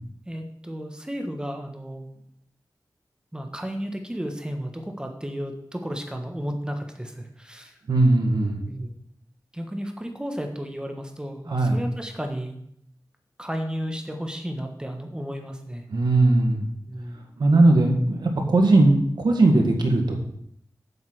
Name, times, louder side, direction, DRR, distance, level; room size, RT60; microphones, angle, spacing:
voice 1, 0.3-2.1 3.3-7.7 8.7-9.0 9.5-12.6 13.4-15.9 16.9-17.2, equal, 10° right, 4 dB, 1.4 m, -33 dB
voice 2, 7.9-8.6 11.5-11.8 15.9-16.7 17.4-20.2, right 2 dB, 90° right, 3 dB, 1.8 m, -19 dB
7.8 x 5.7 x 7.8 m, 0.71 s
wide cardioid pair, 80°, 7 cm